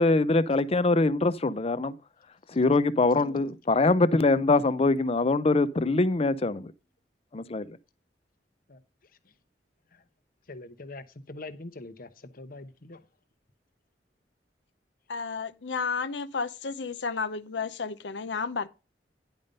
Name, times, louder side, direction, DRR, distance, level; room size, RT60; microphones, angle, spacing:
voice 1, 0.0-1.9 2.5-6.7 7.3-7.8, left 3 dB, 35° left, 0.5 m, -23 dB
voice 2, 3.2-3.6 15.1-18.7, left 5 dB, 85° left, 0.7 m, -32 dB
voice 3, 10.5-13.0, left 2 dB, 55° left, 1.0 m, -43 dB
10.5 x 5.3 x 5.3 m
head